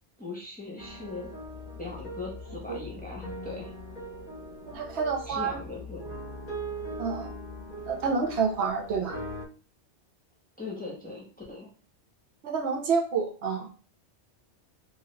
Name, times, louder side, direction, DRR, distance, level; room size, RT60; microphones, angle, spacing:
voice 1, 0.2-1.3 1.8-3.7 5.3-6.0 10.6-11.7, left 3 dB, 10° left, -3 dB, 0.8 m, -39 dB
sound 1, 0.8-9.5, equal, 45° left, 0.8 m, -40 dB
voice 2, 4.7-5.6 7.0-7.3 7.9-9.2 12.4-13.7, right 5 dB, 75° right, 1 dB, 1.0 m, -28 dB
3.0 x 2.3 x 3.1 m, 0.38 s
omnidirectional pair, 1.1 m